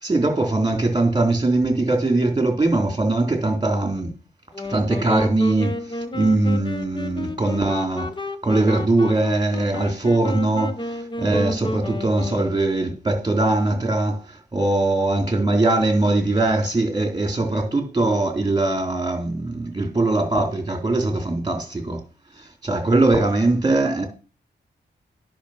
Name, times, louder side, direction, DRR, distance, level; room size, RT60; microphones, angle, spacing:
voice 1, 0.0-4.1 4.7-8.1 8.4-22.0 22.4-24.1, right 2 dB, 20° right, 3.7 m, -21 dB
sound 1, 4.5-13.0, left 2 dB, 25° left, 1.2 m, -32 dB
10.0 x 6.4 x 5.9 m
cardioid pair, 80°, 18 cm